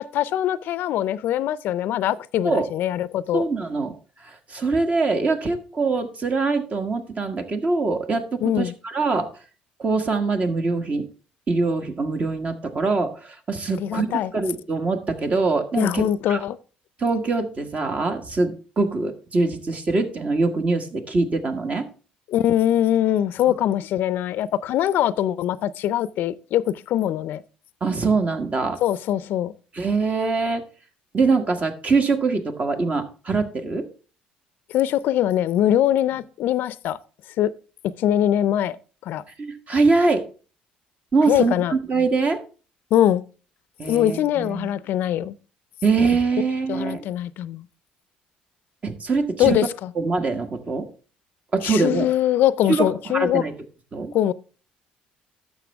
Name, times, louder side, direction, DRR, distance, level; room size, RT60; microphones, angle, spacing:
voice 1, 0.0-3.5 8.4-8.7 13.8-14.3 15.8-16.6 22.3-27.4 28.8-29.5 34.7-37.0 37.4-37.5 38.0-38.8 39.0-39.2 41.3-41.7 42.9-43.2 43.8-45.3 46.7-47.7 49.4-49.9 51.6-53.4 54.1-54.3, left 11 dB, 70° left, 0.4 m, -22 dB
voice 2, 3.3-3.9 4.2-9.3 9.8-11.1 11.5-16.4 17.0-21.9 27.8-28.8 29.7-30.6 31.1-33.9 39.4-40.2 41.1-42.4 43.8-44.7 45.8-47.0 48.8-49.6 49.9-50.9 51.5-52.1 52.7-52.9 53.1-53.5 53.9-54.1, right 3 dB, 40° right, 1.5 m, -23 dB
11.5 x 6.7 x 3.4 m
supercardioid pair, 70°, 4 cm